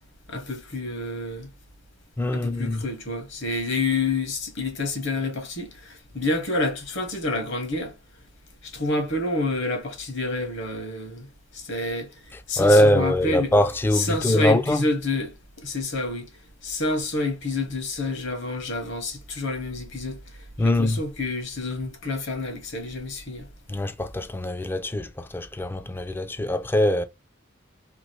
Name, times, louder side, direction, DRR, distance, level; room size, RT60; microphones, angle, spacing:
voice 1, 0.3-1.5 2.3-8.0 8.6-13.5 13.9-15.3 15.6-16.3 16.6-23.5, left 2 dB, 65° left, 1.2 m, -28 dB
voice 2, 2.2-2.8 12.6-14.8 20.6-21.0 23.7-27.0, left 1 dB, 10° left, 0.3 m, -22 dB
3.0 x 2.6 x 3.1 m
head